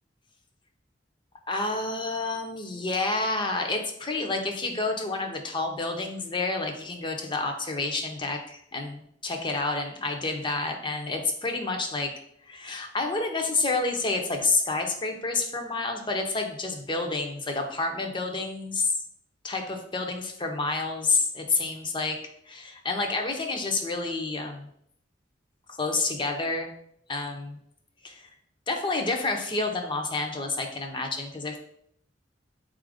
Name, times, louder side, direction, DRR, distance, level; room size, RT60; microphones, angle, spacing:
voice 1, 1.5-12.1 12.4-18.9 19.4-22.2 22.5-24.7 25.7-26.7 27.1-27.6 28.0-28.3 28.7-31.6, left 3 dB, 25° left, 4 dB, 0.6 m, -29 dB
4.2 x 2.5 x 4.8 m, 0.70 s
head